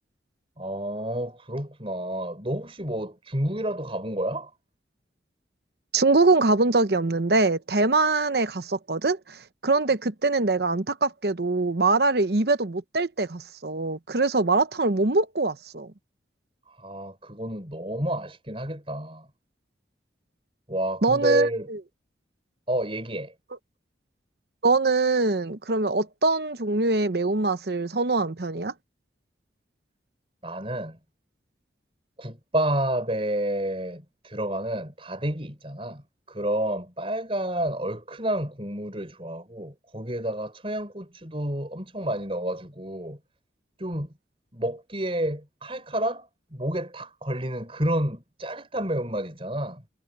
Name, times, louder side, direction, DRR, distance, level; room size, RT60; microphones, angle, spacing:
voice 1, 0.6-4.5 16.8-19.3 20.7-21.7 22.7-23.3 30.4-31.0 32.2-43.2 43.8-44.1 44.5-49.8, right 1 dB, 30° right, 5.1 m, -30 dB
voice 2, 5.9-15.9 21.0-21.8 24.6-28.7, right 3 dB, 60° right, 0.9 m, -23 dB
head